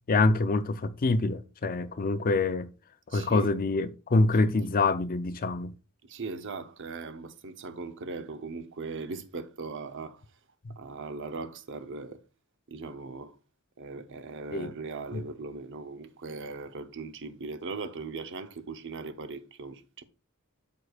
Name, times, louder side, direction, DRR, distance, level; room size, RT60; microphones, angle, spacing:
voice 1, 0.1-2.7 3.1-5.7 10.7-10.8 14.5-14.7 15.1-15.2, left 3 dB, 40° left, 0.5 m, -26 dB
voice 2, 3.1-3.5 6.0-10.2 10.8-12.2 12.7-13.3 13.8-20.0, right 4 dB, 55° right, 0.8 m, -39 dB
13.0 x 4.7 x 2.4 m
head